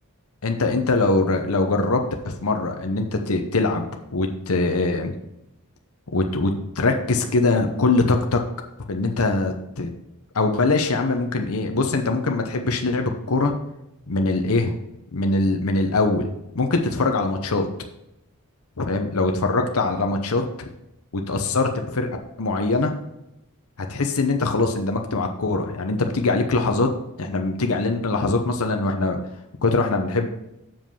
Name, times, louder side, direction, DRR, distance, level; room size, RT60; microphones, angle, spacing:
voice 1, 0.4-5.1 6.1-8.4 8.9-9.9 10.3-13.5 14.1-14.7 15.1-17.7 18.8-20.4 21.1-22.1 22.4-22.9 23.8-26.9 27.2-29.2 29.6-30.3, left 3 dB, 70° left, 4 dB, 0.9 m, -22 dB
7.4 x 5.2 x 5.5 m, 0.88 s
head